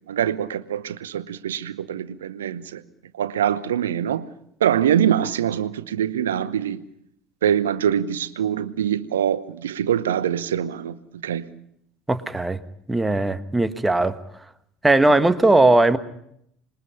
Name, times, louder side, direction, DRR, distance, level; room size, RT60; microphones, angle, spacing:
voice 1, 0.1-2.8 3.1-4.3 4.6-6.8 7.4-11.5, right 9 dB, 70° right, 16 dB, 0.9 m, -24 dB
voice 2, 12.1-12.6 12.9-14.2 14.8-16.0, right 2 dB, 10° right, 10 dB, 1.4 m, -18 dB
26.5 x 21.5 x 5.7 m, 0.74 s
figure-of-eight pair, 65°, 0 cm